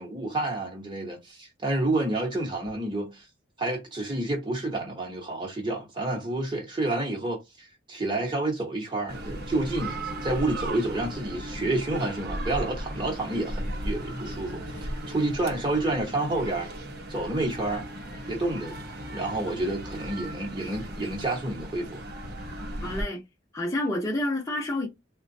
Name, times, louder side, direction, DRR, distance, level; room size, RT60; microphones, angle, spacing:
voice 1, 0.0-3.2 3.6-16.7 17.1-17.9 18.3-18.8 19.1-22.0, right 2 dB, 25° right, 1.0 m, -29 dB
sound 1, 9.1-23.0, right 1 dB, 55° right, 0.8 m, -36 dB
voice 2, 22.8-23.2 23.5-24.9, left 1 dB, 20° left, 0.8 m, -28 dB
3.6 x 2.2 x 2.6 m
head